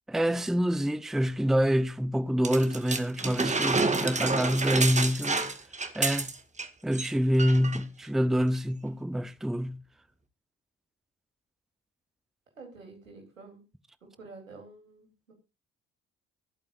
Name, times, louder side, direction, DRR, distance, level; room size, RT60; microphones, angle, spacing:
voice 1, 0.1-5.4 5.9-6.3 6.8-9.8, equal, ahead, 0.8 m, -26 dB
sound 1, 2.4-6.7 6.9-7.1 7.4-7.8 8.5-8.6, right 3 dB, 20° right, 1.8 m, -29 dB
voice 2, 4.2-4.9 12.6-13.6 14.0-15.3, right 3 dB, 85° right, 3.3 m, -47 dB
23.5 x 8.7 x 2.5 m
figure-of-eight pair, 45°, 39 cm